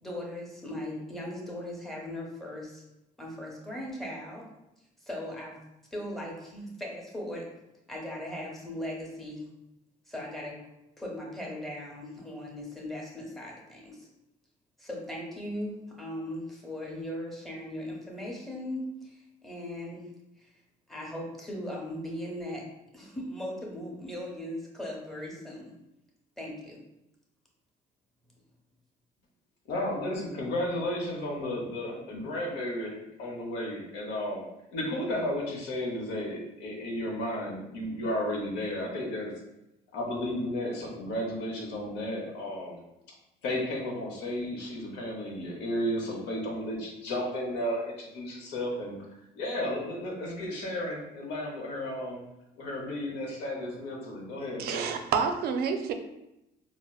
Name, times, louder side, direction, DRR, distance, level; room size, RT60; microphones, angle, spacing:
voice 1, 0.0-2.8 3.2-4.5 5.0-5.6 5.9-7.5 7.9-9.5 10.1-10.6 11.0-14.1 14.8-20.1 20.4-20.5 20.9-22.6 22.9-25.7 26.4-26.8, left 1 dB, ahead, -2 dB, 0.8 m, -38 dB
voice 2, 29.7-34.4 34.7-39.3 39.9-42.8 43.4-49.0 49.4-52.2 52.6-54.9, left 1 dB, 90° left, -2 dB, 0.9 m, -33 dB
voice 3, 54.6-55.9, right 6 dB, 65° right, 7 dB, 0.4 m, -28 dB
4.1 x 2.1 x 2.3 m, 0.88 s
cardioid pair, 110°, 17 cm